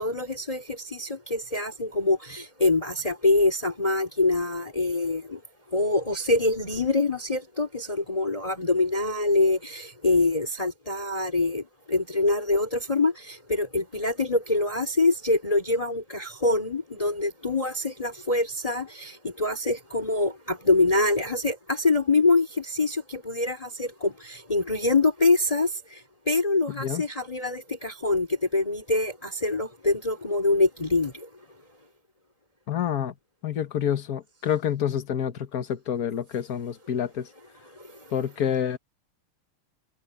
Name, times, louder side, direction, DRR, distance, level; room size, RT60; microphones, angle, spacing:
voice 1, 0.0-5.4 5.7-31.3 37.7-38.1, left 3 dB, 15° left, 3.1 m, -25 dB
voice 2, 32.7-33.1 33.4-37.3 38.1-38.8, left 9 dB, 50° left, 1.6 m, -28 dB
omnidirectional pair, 2.4 m